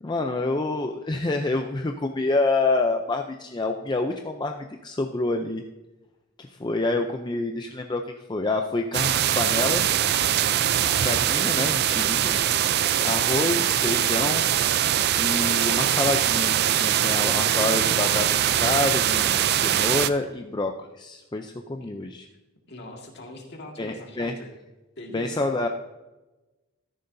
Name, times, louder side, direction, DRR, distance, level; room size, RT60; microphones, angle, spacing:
voice 1, 0.0-5.6 6.4-9.8 11.0-12.4 13.0-14.5 15.2-18.3 18.6-22.3 23.8-24.3 25.1-25.7, left 2 dB, 20° left, 5 dB, 0.4 m, -27 dB
sound 1, 8.9-20.1, right 10 dB, 45° right, 0.4 m, -22 dB
voice 2, 22.7-24.5 25.0-25.5, left 1 dB, 50° left, 1 dB, 1.8 m, -42 dB
13.5 x 10.5 x 2.6 m, 1.1 s
head